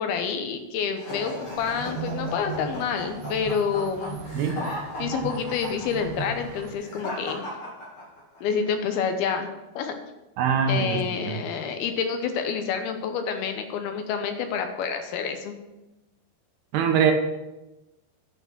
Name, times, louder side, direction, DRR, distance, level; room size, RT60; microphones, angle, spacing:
voice 1, 0.0-4.2 5.0-7.5 8.4-9.5 9.8-9.9 10.7-15.6, left 6 dB, 75° left, 6 dB, 2.6 m, -28 dB
sound 1, 1.0-8.4, left 1 dB, 35° left, 2.9 m, -36 dB
sound 2, 1.4-6.7, right 5 dB, 60° right, 2.7 m, -37 dB
voice 2, 4.4-4.7 10.4-11.3 16.7-17.1, right 7 dB, 80° right, 4 dB, 3.0 m, -23 dB
11.0 x 5.7 x 6.0 m, 1.0 s
omnidirectional pair, 4.7 m